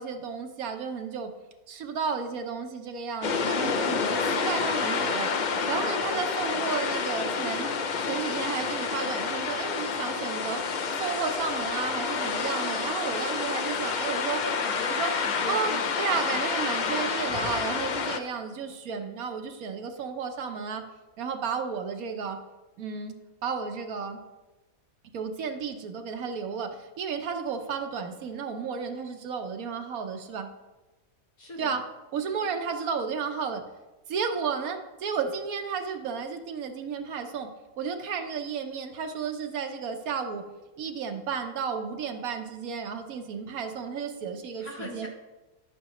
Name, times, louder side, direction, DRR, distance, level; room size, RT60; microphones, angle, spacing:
voice 1, 0.0-1.3 1.7-5.3 5.7-7.7 8.0-10.6 10.9-14.4 14.9-15.1 15.5-20.9 21.2-22.4 22.8-23.1 23.4-24.2 25.1-30.5 31.6-31.8 32.1-33.6 34.1-37.5 37.8-40.4 40.8-45.1, right 6 dB, 85° right, 6 dB, 1.4 m, -33 dB
sound 1, 3.2-18.2, left 5 dB, 55° left, 0.5 m, -29 dB
voice 2, 14.3-15.8 31.4-31.8 44.6-45.1, left 1 dB, 90° left, 0 dB, 2.2 m, -39 dB
11.0 x 8.6 x 3.1 m, 1.1 s
omnidirectional pair, 1.5 m